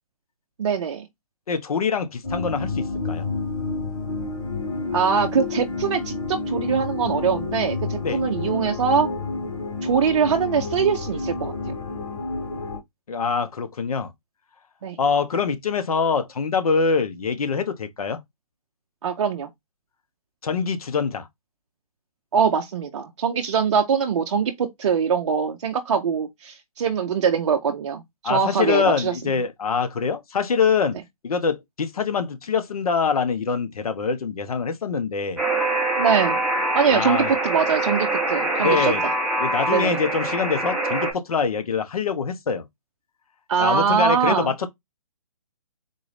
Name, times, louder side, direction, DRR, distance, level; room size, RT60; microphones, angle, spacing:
voice 1, 0.6-1.1 4.9-9.1 9.8-11.5 14.8-15.0 19.0-19.5 22.3-29.2 36.0-36.4 36.7-39.0 39.7-40.0 43.5-44.5, right 6 dB, 55° right, 0.5 m, -23 dB
voice 2, 1.5-3.3 8.0-8.2 13.1-14.1 15.0-18.2 20.4-21.3 28.2-31.0 31.2-35.4 36.9-37.3 38.6-39.0 39.4-42.7 43.6-44.7, left 5 dB, 75° left, 0.8 m, -24 dB
sound 1, 2.2-12.8, left 3 dB, 50° left, 2.4 m, -29 dB
Alarm, 35.4-41.1, right 2 dB, ahead, 0.8 m, -24 dB
3.9 x 2.5 x 3.2 m
hypercardioid pair, 155°, 19 cm